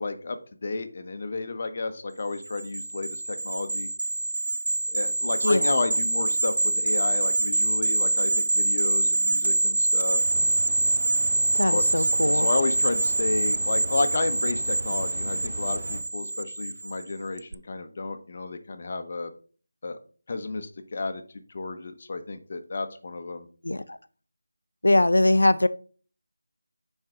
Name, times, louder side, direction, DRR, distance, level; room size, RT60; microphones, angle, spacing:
voice 1, 0.0-3.9 4.9-10.5 11.7-19.3 19.8-20.0 20.3-23.5, left 3 dB, 40° left, 8 dB, 0.8 m, -31 dB
sound 1, 2.4-17.0 17.4-17.5, right 2 dB, 60° right, 0.3 m, -25 dB
sound 2, 10.2-16.0, right 1 dB, 35° right, 1.3 m, -39 dB
voice 2, 11.5-12.5 23.6-24.0 24.8-25.7, left 1 dB, 85° left, 14 dB, 0.6 m, -21 dB
9.6 x 4.5 x 3.7 m, 0.41 s
figure-of-eight pair, 170°, 0 cm